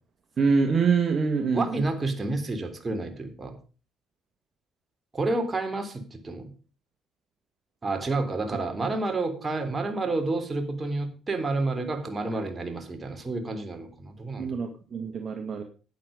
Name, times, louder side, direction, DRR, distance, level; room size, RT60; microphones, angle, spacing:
voice 1, 0.4-1.8 14.4-15.6, right 5 dB, 50° right, 4 dB, 1.9 m, -25 dB
voice 2, 1.5-3.6 5.1-6.5 7.8-14.6, right 2 dB, 30° right, 5 dB, 3.5 m, -30 dB
11.5 x 9.5 x 5.2 m, 0.35 s
supercardioid pair, 65°, 0 cm